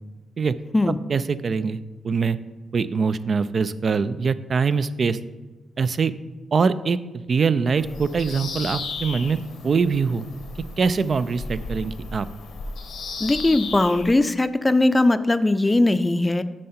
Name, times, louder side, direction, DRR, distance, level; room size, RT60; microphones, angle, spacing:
voice 1, 1.1-1.8 2.0-2.4 2.7-5.2 5.8-6.1 6.5-7.0 7.3-9.4 9.6-10.3 10.8-12.3, right 5 dB, 55° right, 13 dB, 0.3 m, -23 dB
Bird vocalization bird call bird song, 7.8-14.2, left 3 dB, 85° left, 1.1 m, -35 dB
voice 2, 13.2-16.4, left 2 dB, 20° left, 13 dB, 0.5 m, -19 dB
7.4 x 5.4 x 4.3 m, 1.2 s
cardioid pair, 60°, 0 cm